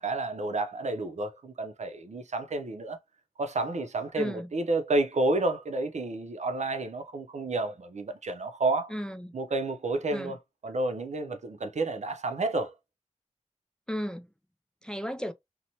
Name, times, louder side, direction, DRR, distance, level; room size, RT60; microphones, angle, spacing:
voice 1, 0.0-3.0 3.4-8.9 9.3-12.7, right 2 dB, 75° right, 0.5 m, -30 dB
voice 2, 4.2-4.5 8.9-9.3 10.1-10.4 13.9-14.3 14.8-15.3, equal, 5° left, 0.3 m, -34 dB
2.9 x 2.1 x 2.6 m
wide cardioid pair, 75°, 12 cm